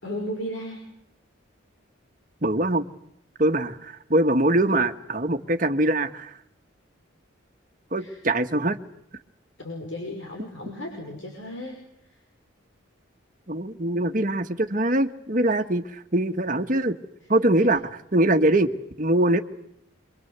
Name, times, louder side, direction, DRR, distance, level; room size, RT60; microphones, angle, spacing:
voice 1, 0.0-0.8 8.0-8.2 9.6-11.8 17.6-17.7, left 1 dB, 70° left, 0 dB, 5.8 m, -35 dB
voice 2, 2.4-2.9 3.4-6.3 7.9-8.8 13.5-17.0 17.3-18.7 19.0-19.4, right 1 dB, 40° right, 7 dB, 1.5 m, -23 dB
26.5 x 23.5 x 8.2 m, 0.76 s
head